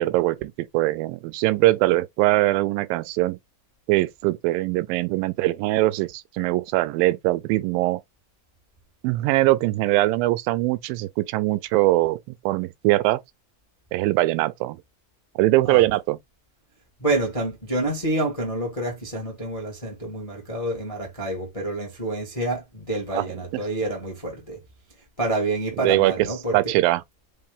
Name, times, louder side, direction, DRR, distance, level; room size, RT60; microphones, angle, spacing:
voice 1, 0.0-3.4 3.9-8.0 9.0-13.2 13.9-14.8 15.4-16.2 23.1-23.6 25.8-26.3 26.5-27.0, right 18 dB, 90° right, 2.3 m, -22 dB
voice 2, 17.0-24.6 25.2-26.7, right 2 dB, 35° left, 0.5 m, -28 dB
5.4 x 2.8 x 3.4 m
omnidirectional pair, 4.0 m